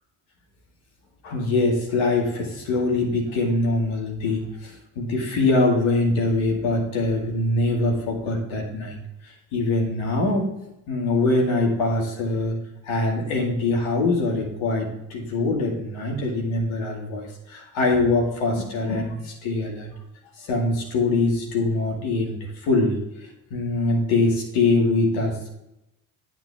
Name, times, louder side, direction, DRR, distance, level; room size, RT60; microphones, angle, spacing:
voice 1, 1.2-9.0 9.5-10.5 10.9-12.6 12.8-19.9 20.4-23.0 23.5-25.5, left 2 dB, 75° left, 1 dB, 2.3 m, -23 dB
9.1 x 8.5 x 3.5 m, 0.86 s
hypercardioid pair, 40°, 49 cm